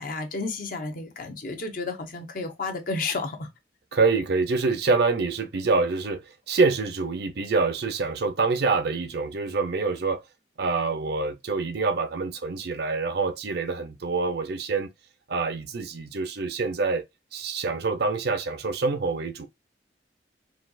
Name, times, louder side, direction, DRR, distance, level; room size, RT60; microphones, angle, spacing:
voice 1, 0.0-3.5, left 3 dB, 50° left, 0.9 m, -32 dB
voice 2, 3.9-10.2 10.6-14.9 15.3-17.0 17.3-19.5, right 4 dB, 65° right, 0.6 m, -26 dB
4.2 x 2.4 x 2.4 m
head